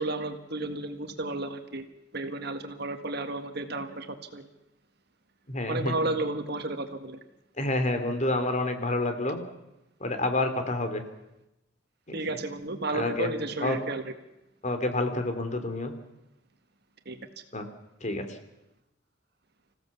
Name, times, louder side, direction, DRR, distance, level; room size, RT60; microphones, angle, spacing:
voice 1, 0.0-1.9 2.1-4.1 4.3-4.5 5.7-7.2 12.1-14.0 17.1-17.2, right 2 dB, 55° right, 7 dB, 1.8 m, -32 dB
voice 2, 5.5-5.9 7.6-9.4 10.0-11.0 12.1-12.4 12.9-13.3 13.6-13.8 14.6-15.9 17.5-17.7 18.0-18.2, left 2 dB, 40° left, 7 dB, 2.7 m, -28 dB
27.0 x 16.5 x 7.3 m, 0.91 s
head